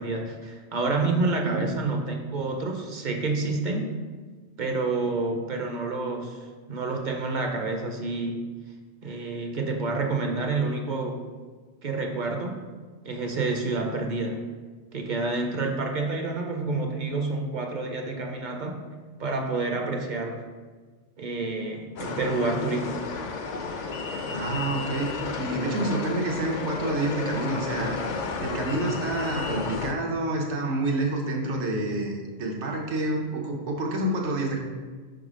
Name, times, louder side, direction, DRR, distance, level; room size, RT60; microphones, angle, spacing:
voice 1, 0.0-3.9 4.6-6.4 6.7-8.5 9.0-11.2 11.8-12.6 13.0-14.4 14.9-18.8 19.2-20.4 21.2-22.9, right 3 dB, 50° right, 3 dB, 0.7 m, -28 dB
voice 2, 1.4-1.8 24.3-25.1 25.4-28.0 28.4-34.6, right 2 dB, 80° right, 0 dB, 1.2 m, -28 dB
sound 1, 22.0-29.9, left 4 dB, 50° left, 0.6 m, -32 dB
5.5 x 3.8 x 4.9 m, 1.4 s
omnidirectional pair, 1.1 m